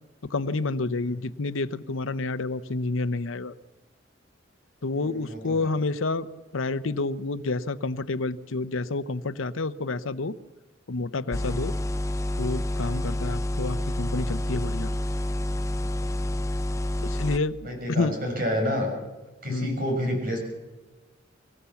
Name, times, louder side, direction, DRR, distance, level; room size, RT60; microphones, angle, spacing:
voice 1, 0.2-3.5 4.8-6.3 6.5-10.4 10.9-11.7 12.4-14.9 17.0-18.1 19.5-19.8, left 3 dB, 90° left, 13 dB, 0.8 m, -29 dB
voice 2, 5.1-5.7 11.6-11.8 17.6-18.9 19.4-20.4, equal, 45° right, 2 dB, 6.1 m, -29 dB
sound 1, 11.3-17.4, left 1 dB, 15° left, 0.7 m, -28 dB
25.0 x 16.0 x 7.1 m, 1.2 s
head